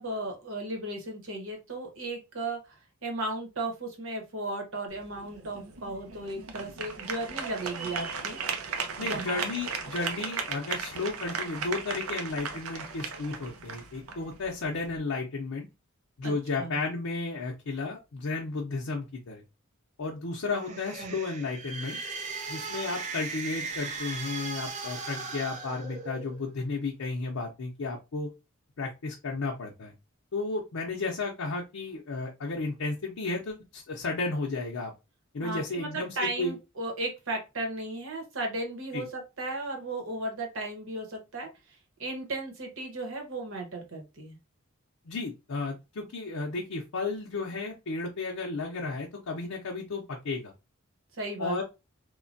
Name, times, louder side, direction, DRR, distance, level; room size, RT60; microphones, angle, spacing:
voice 1, 0.0-8.4 9.0-9.4 16.2-16.8 20.7-21.1 35.4-44.4 51.1-51.6, right 2 dB, 65° right, 3 dB, 0.9 m, -35 dB
sound 1, 4.9-15.0, right 5 dB, 90° right, 0.6 m, -37 dB
voice 2, 9.0-15.7 16.2-19.4 20.0-22.0 22.5-28.3 28.8-29.9 30.3-34.9 35.3-36.5 38.9-39.0 45.0-50.5 51.4-51.6, left 3 dB, 75° left, 0 dB, 0.6 m, -33 dB
sound 2, 20.4-26.5, right 4 dB, 35° right, 0.4 m, -38 dB
3.1 x 2.1 x 2.5 m, 0.26 s
head